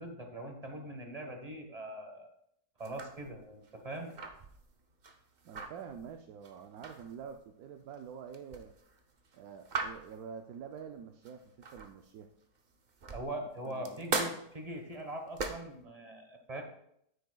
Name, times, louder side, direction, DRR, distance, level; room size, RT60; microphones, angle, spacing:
voice 1, 0.0-2.3 2.8-4.1 13.1-16.6, right 1 dB, 25° right, 4 dB, 1.2 m, -42 dB
sound 1, 2.8-12.1 12.6-15.8, right 3 dB, 50° right, 0.5 m, -40 dB
voice 2, 5.4-8.7 9.3-12.3 13.6-14.1, right 7 dB, 70° right, 5 dB, 1.0 m, -47 dB
9.4 x 9.2 x 2.3 m, 0.73 s
omnidirectional pair, 1.8 m